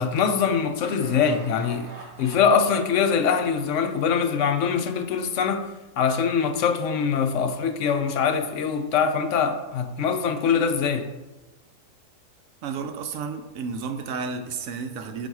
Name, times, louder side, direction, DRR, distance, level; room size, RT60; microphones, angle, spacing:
voice 1, 0.0-5.7 6.0-11.1, left 6 dB, 65° left, 0.8 m, -23 dB
Laughter, 0.8-4.6, right 3 dB, 85° right, 1.6 m, -46 dB
voice 2, 12.6-15.3, right 5 dB, 65° right, 1.0 m, -32 dB
7.0 x 4.0 x 4.7 m
omnidirectional pair, 1.7 m